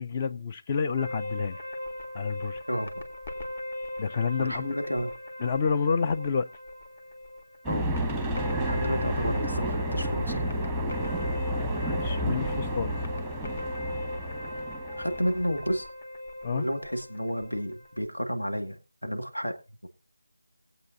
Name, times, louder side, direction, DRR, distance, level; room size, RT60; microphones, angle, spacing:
voice 1, 0.0-1.6 2.1-2.6 4.0-4.8 5.4-6.5 11.8-13.0 16.4-16.7, left 5 dB, 20° left, 0.5 m, -29 dB
sound 1, 1.0-18.1, left 1 dB, 40° left, 1.9 m, -39 dB
voice 2, 2.7-3.0 4.4-5.1 7.7-7.9 8.6-10.6 15.0-15.9 16.5-19.6 19.8-19.9, equal, 85° left, 1.9 m, -31 dB
sound 2, 7.6-15.7, right 1 dB, ahead, 1.2 m, -31 dB
20.0 x 8.1 x 2.6 m
figure-of-eight pair, 165°, 0 cm